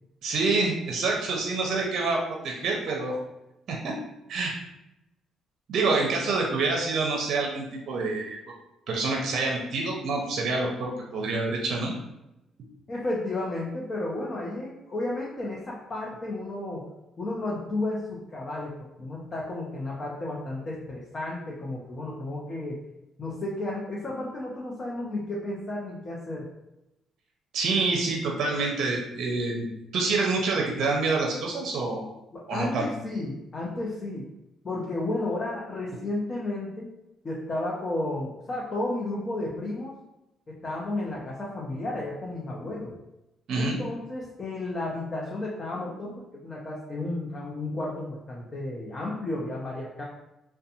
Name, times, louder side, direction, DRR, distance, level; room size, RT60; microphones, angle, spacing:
voice 1, 0.2-3.1 3.7-3.9 4.3-4.5 5.7-8.4 8.9-11.9 27.5-29.6 29.9-32.1 32.5-32.9 43.5-43.8, right 3 dB, 65° right, 0 dB, 0.5 m, -27 dB
voice 2, 12.9-16.9 17.2-22.8 23.2-26.5 32.3-34.3 34.6-36.9 37.2-39.9 40.5-42.9 43.5-50.0, left 2 dB, 35° left, -4 dB, 0.6 m, -33 dB
2.5 x 2.1 x 2.8 m, 0.92 s
cardioid pair, 85°, 0 cm